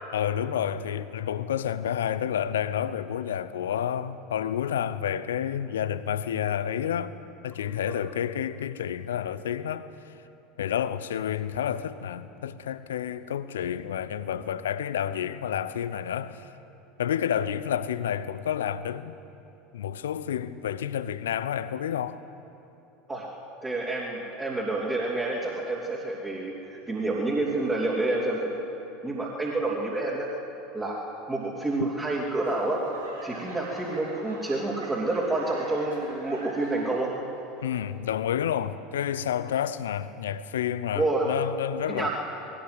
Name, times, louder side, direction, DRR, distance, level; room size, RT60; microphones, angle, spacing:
voice 1, 0.1-7.1 7.4-9.9 10.6-16.5 17.0-19.2 19.7-22.2 37.6-42.1, left 9 dB, 70° left, 0.7 m, -30 dB
voice 2, 23.6-28.5 29.0-30.3 30.7-31.0 31.3-32.8 33.2-37.1 40.9-41.3 41.9-42.1, right 2 dB, 15° right, 3.3 m, -28 dB
Laughter / Clapping / Crowd, 32.4-37.2 37.5-38.1 38.6-38.7, right 2 dB, 85° right, 4.1 m, -43 dB
20.0 x 17.0 x 8.0 m
figure-of-eight pair, 75°, 0 cm